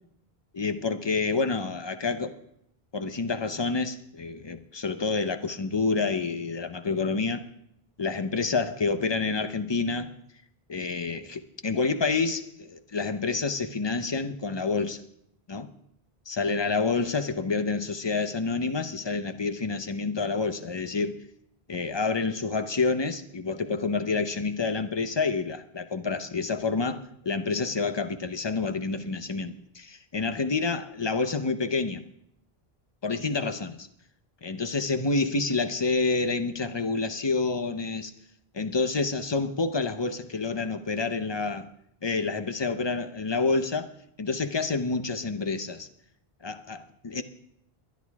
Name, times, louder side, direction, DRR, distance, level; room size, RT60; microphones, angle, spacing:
voice 1, 0.6-2.4 2.9-7.5 8.0-10.1 10.7-15.0 15.5-15.7 16.3-21.2 21.7-32.0 33.0-33.9 34.4-38.1 38.5-41.7 42.0-43.9 44.2-45.9 46.4-47.2, left 4 dB, 30° left, 0.8 m, -28 dB
22.0 x 10.5 x 3.6 m
omnidirectional pair, 1.0 m